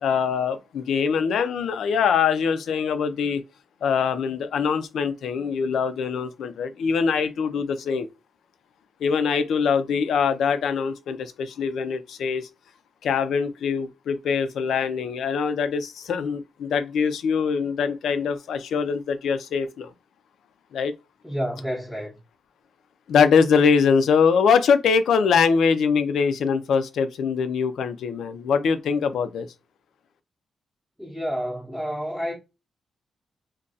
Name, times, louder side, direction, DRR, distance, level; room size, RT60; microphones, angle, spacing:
voice 1, 0.0-3.4 3.8-8.1 9.0-12.5 13.0-19.9 20.7-20.9 23.1-29.5, left 6 dB, 80° left, 0.5 m, -23 dB
voice 2, 21.2-22.2 31.0-32.4, equal, ahead, 0.7 m, -29 dB
2.5 x 2.2 x 3.9 m
cardioid pair, 120°, 0 cm